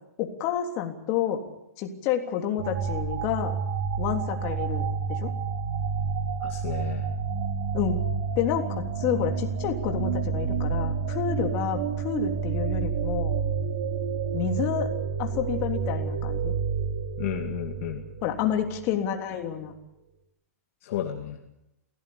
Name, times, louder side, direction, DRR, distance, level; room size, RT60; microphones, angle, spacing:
voice 1, 0.2-1.4 1.8-3.6 4.0-5.3 7.7-8.0 8.3-13.3 14.3-14.9 15.2-16.5 18.2-19.7, left 9 dB, 35° left, 3 dB, 3.4 m, -29 dB
sound 1, 2.6-18.9, right 6 dB, 55° right, 2.6 m, -29 dB
voice 2, 6.4-7.1 17.2-18.0 20.8-21.4, left 11 dB, 50° left, 3 dB, 2.4 m, -33 dB
24.0 x 17.0 x 8.7 m, 0.87 s
hypercardioid pair, 140°, 8 cm